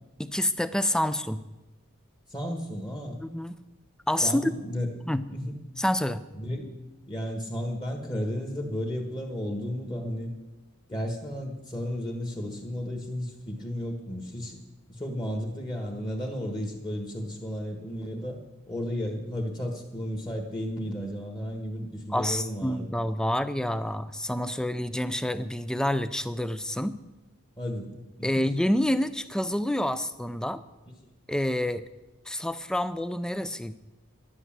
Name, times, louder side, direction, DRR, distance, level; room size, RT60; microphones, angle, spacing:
voice 1, 0.2-1.4 3.2-3.6 4.1-4.5 5.0-5.2 5.8-6.2 22.1-27.0 28.2-30.6 31.3-31.8 32.3-33.7, left 1 dB, 5° left, 13 dB, 0.4 m, -28 dB
voice 2, 2.3-3.2 4.2-4.9 5.3-5.6 6.3-6.7 7.1-10.3 10.9-14.6 14.9-18.4 18.7-22.9 27.6-27.9 28.2-28.4, equal, 20° left, 2 dB, 1.6 m, -33 dB
11.5 x 11.0 x 7.5 m, 1.1 s
head